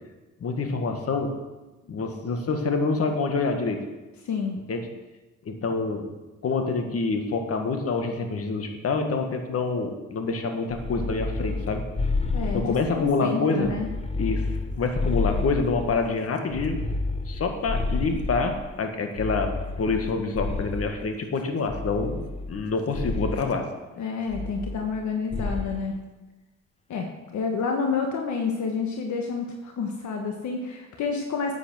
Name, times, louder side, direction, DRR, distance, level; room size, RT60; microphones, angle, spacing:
voice 1, 0.4-1.4 1.9-3.9 4.7-4.9 5.5-6.1 6.4-11.8 12.5-13.8 14.2-16.9 17.3-23.7, left 4 dB, 50° left, 5 dB, 1.8 m, -27 dB
voice 2, 4.2-4.6 6.9-7.0 12.3-13.9 24.0-26.0 26.9-27.1 27.3-31.5, left 5 dB, 70° left, 2 dB, 1.5 m, -29 dB
sound 1, 10.7-13.1 13.6-16.1 16.5-18.7 19.2-21.0 21.7-22.6 22.9-23.4 24.3-25.0 25.3-25.8, left 3 dB, 20° left, 1.1 m, -30 dB
10.5 x 8.4 x 6.3 m, 1.1 s
cardioid pair, 90°, 30 cm